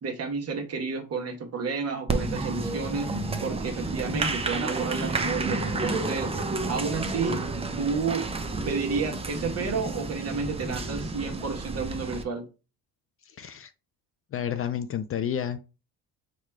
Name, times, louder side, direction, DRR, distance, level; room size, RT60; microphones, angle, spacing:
voice 1, 0.0-3.1 3.4-6.3 6.7-7.4 7.8-8.3 8.7-12.5, right 4 dB, 40° right, 1.2 m, -31 dB
Applause, 2.1-12.2, right 3 dB, 15° right, 0.6 m, -30 dB
voice 2, 13.3-13.7 14.3-15.6, left 9 dB, 40° left, 0.4 m, -30 dB
4.9 x 2.4 x 4.4 m
cardioid pair, 115°, 36 cm